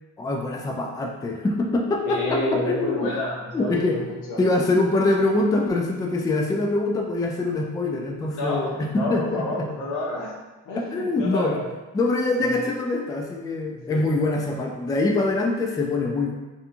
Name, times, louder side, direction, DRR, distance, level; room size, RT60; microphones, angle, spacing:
voice 1, 0.2-3.1 3.5-4.0 4.4-9.7 10.8-11.6 11.9-16.3, left 2 dB, 15° left, 1 dB, 0.3 m, -24 dB
voice 2, 2.0-4.4 8.3-10.4 10.6-11.6 12.4-12.5 13.7-14.1, left 1 dB, 85° left, -4 dB, 0.8 m, -29 dB
2.7 x 2.2 x 2.6 m, 1.2 s
cardioid pair, 90°, 30 cm